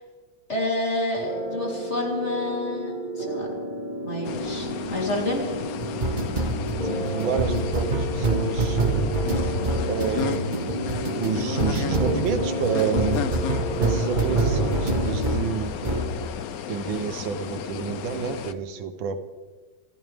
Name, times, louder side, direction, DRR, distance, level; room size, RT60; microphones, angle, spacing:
voice 1, 0.5-3.5 4.0-5.5, left 1 dB, 35° left, -2 dB, 3.8 m, -28 dB
sound 1, 1.2-15.5 15.8-16.1, right 2 dB, 25° right, 1.8 m, -27 dB
sound 2, 4.2-18.5, left 9 dB, 65° left, 1.0 m, -33 dB
voice 2, 6.8-9.2 9.9-10.7 11.1-15.8 16.7-19.2, right 6 dB, 75° right, 9 dB, 1.7 m, -29 dB
27.5 x 14.0 x 3.5 m, 1.4 s
omnidirectional pair, 2.1 m